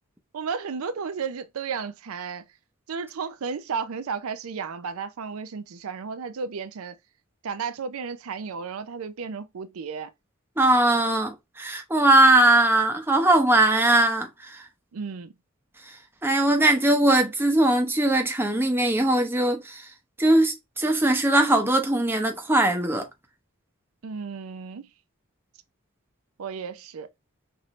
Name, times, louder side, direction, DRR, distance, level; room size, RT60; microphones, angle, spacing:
voice 1, 0.3-2.4 2.9-7.0 7.4-10.1 14.9-15.3 24.0-24.9 26.4-27.1, right 5 dB, 75° right, 0.5 m, -33 dB
voice 2, 10.6-14.6 16.2-19.9 20.2-23.1, right 1 dB, 10° right, 0.7 m, -20 dB
5.9 x 2.6 x 3.1 m
head